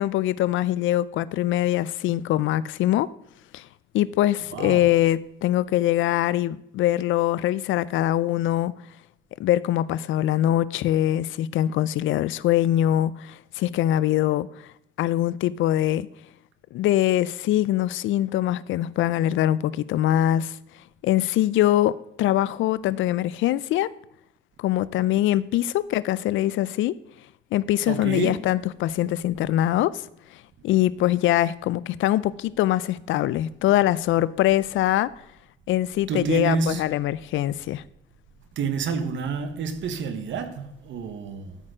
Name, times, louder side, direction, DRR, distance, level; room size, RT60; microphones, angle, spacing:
voice 1, 0.0-3.1 3.5-3.7 3.9-8.7 9.4-14.5 15.0-16.1 16.7-20.6 21.0-23.9 24.6-27.0 27.5-30.0 30.6-35.1 35.7-37.8, left 13 dB, 80° left, 0.4 m, -23 dB
voice 2, 4.5-4.9 27.8-28.4 36.1-36.8 38.5-41.6, right 5 dB, 70° right, 1.2 m, -28 dB
13.0 x 4.3 x 4.9 m
cardioid pair, 90°, 20 cm